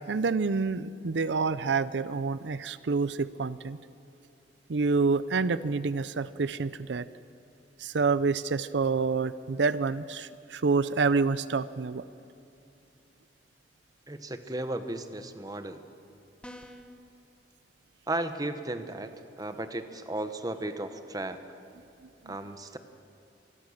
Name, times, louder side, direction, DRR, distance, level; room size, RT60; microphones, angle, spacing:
voice 1, 0.1-3.8 4.7-7.1 7.8-12.0, right 4 dB, 85° right, 15 dB, 0.6 m, -27 dB
voice 2, 14.1-15.8 18.1-21.4 22.2-22.8, right 1 dB, 20° right, 9 dB, 1.2 m, -35 dB
sound 1, 16.4-17.0, left 1 dB, 5° left, 1.5 m, -46 dB
25.5 x 21.0 x 6.5 m, 2.7 s
head